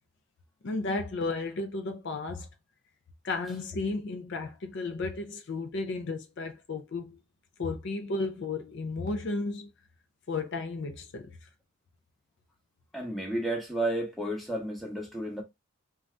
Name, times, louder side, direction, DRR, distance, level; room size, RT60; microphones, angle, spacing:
voice 1, 0.6-2.5 3.2-7.2 7.6-9.7 10.3-11.5, left 3 dB, 55° left, 0.4 m, -33 dB
voice 2, 12.9-15.4, right 1 dB, ahead, 0.7 m, -32 dB
2.5 x 2.3 x 3.1 m
head